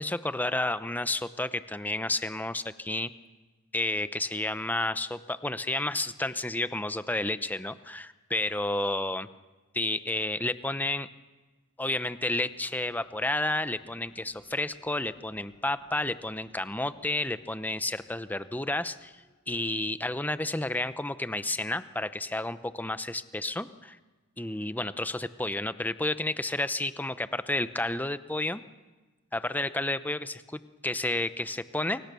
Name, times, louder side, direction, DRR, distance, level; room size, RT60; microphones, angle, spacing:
voice 1, 0.0-3.1 3.7-9.3 9.7-11.1 11.8-24.0 24.4-28.6 29.3-32.0, left 2 dB, 10° left, 13 dB, 0.8 m, -31 dB
sound 1, 12.2-19.7, left 1 dB, 60° left, 7.7 m, -63 dB
29.0 x 23.0 x 6.9 m, 1.2 s
head